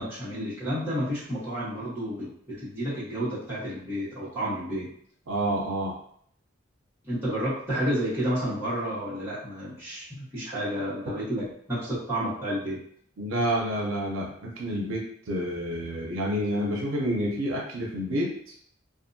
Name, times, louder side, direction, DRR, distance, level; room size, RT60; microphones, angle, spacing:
voice 1, 0.0-4.9 7.0-12.8, equal, 10° right, -11 dB, 1.2 m, -31 dB
voice 2, 5.3-5.9 13.2-18.3, equal, 80° right, -2 dB, 0.6 m, -29 dB
2.6 x 2.4 x 2.6 m, 0.64 s
head